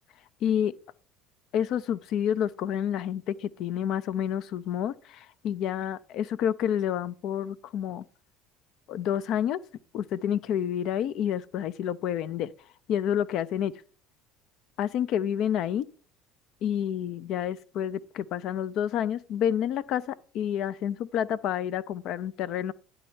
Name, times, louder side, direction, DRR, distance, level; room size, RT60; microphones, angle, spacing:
voice 1, 0.4-0.7 1.5-8.0 8.9-9.6 9.9-12.5 12.9-13.7 14.8-15.9 16.6-22.7, left 9 dB, 60° left, 0.4 m, -29 dB
9.8 x 3.4 x 7.0 m
hypercardioid pair, 65°, 0 cm